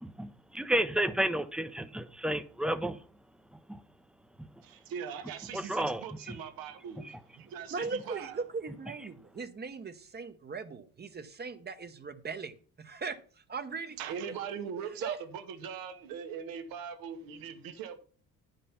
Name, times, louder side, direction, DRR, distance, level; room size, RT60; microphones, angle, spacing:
voice 1, 0.0-3.0 3.7-3.8 4.4-4.5 5.5-6.4, right 1 dB, 5° right, 0.6 m, -31 dB
voice 2, 4.6-8.4 14.0-18.0, right 7 dB, 80° right, 1.4 m, -41 dB
voice 3, 7.7-12.5 12.8-13.2 13.5-14.0 15.0-15.2, right 4 dB, 30° right, 0.9 m, -38 dB
9.7 x 5.3 x 5.7 m
cardioid pair, 100°, 34 cm